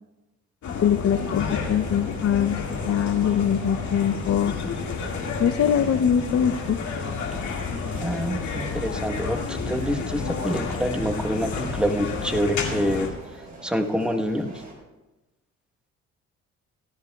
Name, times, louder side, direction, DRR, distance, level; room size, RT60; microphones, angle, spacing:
sound 1, 0.6-13.1, left 5 dB, 75° left, 2.0 m, -30 dB
voice 1, 0.8-2.6 2.8-4.5 5.4-6.8, left 8 dB, 50° left, 14 dB, 0.7 m, -22 dB
sound 2, 1.1-14.7, right 1 dB, 30° right, 4.6 m, -44 dB
voice 2, 8.0-13.1 13.6-14.5, equal, 5° right, 4 dB, 1.1 m, -26 dB
17.5 x 13.0 x 2.3 m, 1.1 s
cardioid pair, 90°, 30 cm